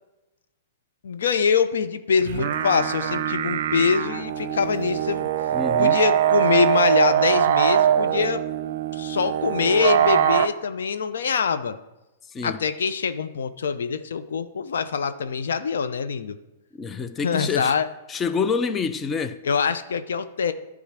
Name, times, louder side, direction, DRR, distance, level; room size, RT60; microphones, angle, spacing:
voice 1, 1.0-5.3 5.8-8.4 8.9-11.8 12.4-16.4 17.2-17.9 19.4-20.5, left 6 dB, 75° left, 0.7 m, -24 dB
sound 1, 2.2-10.5, right 10 dB, 60° right, 0.6 m, -22 dB
voice 2, 5.5-6.0 12.3-12.6 16.8-17.8 18.1-19.4, left 5 dB, 20° left, 0.6 m, -27 dB
11.5 x 3.8 x 7.5 m
hypercardioid pair, 115°, 0 cm